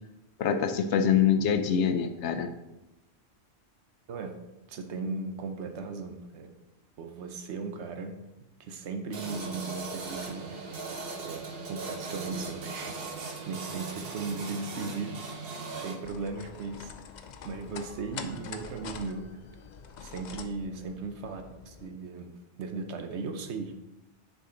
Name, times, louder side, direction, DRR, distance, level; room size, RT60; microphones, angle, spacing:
voice 1, 0.4-2.5, left 7 dB, 90° left, 8 dB, 1.0 m, -25 dB
voice 2, 4.7-6.5 7.0-8.2 8.6-10.7 11.2-11.4 11.7-15.2 15.8-16.9 17.4-19.3 20.0-23.8, right 4 dB, 80° right, 6 dB, 1.1 m, -37 dB
sound 1, 9.1-16.0, right 4 dB, 60° right, 1.2 m, -38 dB
sound 2, 16.0-21.9, left 6 dB, 55° left, 0.5 m, -45 dB
6.6 x 5.1 x 3.8 m, 0.97 s
omnidirectional pair, 1.1 m